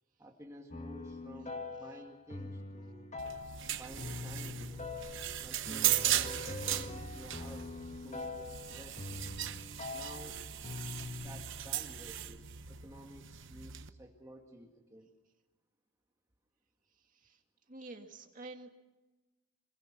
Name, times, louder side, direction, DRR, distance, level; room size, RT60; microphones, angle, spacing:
voice 1, 0.2-3.1 3.7-4.9 5.4-9.0 9.9-10.4 11.2-15.1, right 1 dB, 15° right, 1 dB, 1.9 m, -52 dB
sound 1, 0.7-11.4, left 3 dB, 30° left, 1.4 m, -43 dB
sound 2, 3.2-13.9, right 11 dB, 55° right, 0.9 m, -37 dB
voice 2, 17.7-18.7, right 2 dB, 35° right, 4 dB, 2.2 m, -48 dB
26.5 x 21.0 x 6.1 m, 1.1 s
head